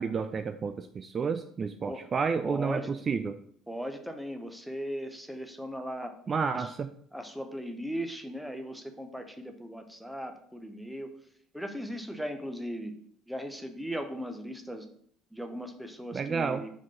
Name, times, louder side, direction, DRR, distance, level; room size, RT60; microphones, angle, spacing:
voice 1, 0.0-3.4 6.3-6.9 16.1-16.6, right 5 dB, 35° right, 9 dB, 0.3 m, -30 dB
voice 2, 2.4-2.9 3.7-6.1 6.5-6.7 7.1-11.1 11.5-12.9 13.3-14.9 15.3-16.7, equal, ahead, 5 dB, 0.9 m, -38 dB
4.8 x 3.8 x 5.6 m, 0.64 s
figure-of-eight pair, 55°, 0 cm